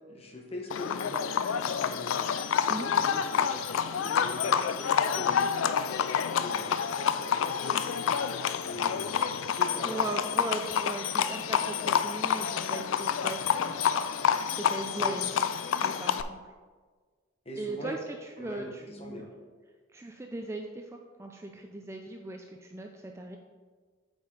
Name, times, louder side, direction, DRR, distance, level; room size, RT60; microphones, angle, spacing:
voice 1, 0.1-2.3 3.0-5.9 6.3-8.0 8.6-10.1 15.0-15.2 17.4-18.0 18.4-19.3, left 1 dB, 30° left, 0 dB, 1.1 m, -42 dB
Livestock farm animals working animals, 0.7-16.2, left 7 dB, 85° left, 0.4 m, -28 dB
voice 2, 9.8-14.0 14.5-16.5 17.6-19.3 19.9-23.4, right 2 dB, 15° right, 2 dB, 0.3 m, -39 dB
8.1 x 5.3 x 3.9 m, 1.5 s
head